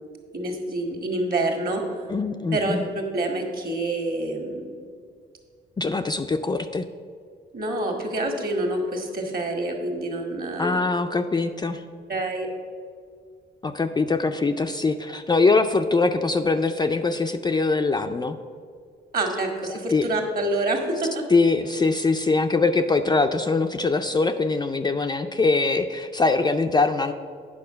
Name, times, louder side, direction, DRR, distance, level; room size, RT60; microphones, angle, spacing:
voice 1, 0.3-2.0 2.5-2.8 3.1-4.7 7.5-10.8 12.1-12.5 19.1-21.2, right 2 dB, 45° right, 3 dB, 1.7 m, -27 dB
voice 2, 2.1-2.9 5.8-6.8 10.6-11.8 13.6-18.4 19.9-20.1 21.3-27.1, left 3 dB, 20° left, 6 dB, 0.4 m, -22 dB
8.6 x 5.9 x 5.6 m, 2.1 s
cardioid pair, 90°, 20 cm